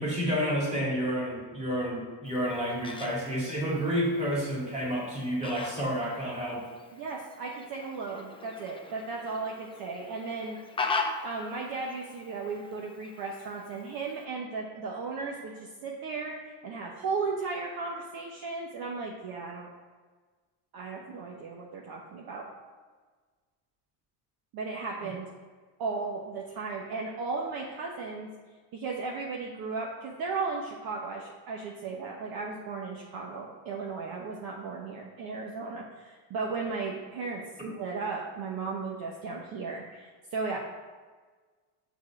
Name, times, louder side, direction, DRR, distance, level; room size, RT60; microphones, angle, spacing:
voice 1, 0.0-6.6 37.6-37.7, equal, 15° right, -4 dB, 2.4 m, -30 dB
Fowl, 2.3-14.3, left 3 dB, 10° left, 0.4 m, -40 dB
voice 2, 6.9-10.6 11.2-19.7 20.7-22.4 24.5-25.3 25.8-28.3 28.7-37.4 37.8-40.6, right 4 dB, 45° right, -1 dB, 1.0 m, -35 dB
6.7 x 4.0 x 6.0 m, 1.4 s
cardioid pair, 135°, 48 cm